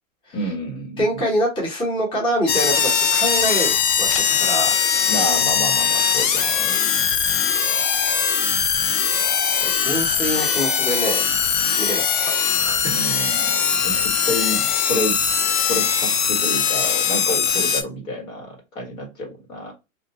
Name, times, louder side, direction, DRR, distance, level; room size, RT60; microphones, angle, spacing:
voice 1, 0.3-1.2 5.1-6.9 12.9-15.2 15.6-19.7, equal, 85° left, 1.6 m, -29 dB
voice 2, 1.0-4.9 9.5-11.2 11.8-12.1 12.5-13.0 13.8-14.1, equal, 10° left, 0.8 m, -25 dB
sound 1, 2.5-17.8, left 7 dB, 40° left, 0.5 m, -20 dB
2.7 x 2.0 x 2.8 m
hypercardioid pair, 135°, 40 cm